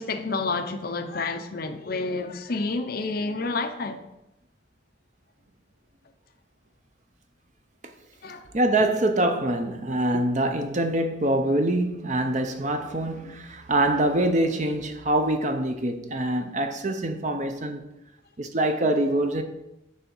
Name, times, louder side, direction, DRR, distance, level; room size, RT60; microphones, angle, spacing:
voice 1, 0.0-4.0 8.2-8.5, left 3 dB, 50° left, 0.6 m, -29 dB
voice 2, 8.5-17.8 18.4-19.4, right 1 dB, 35° right, 0.7 m, -24 dB
9.7 x 3.5 x 7.0 m
head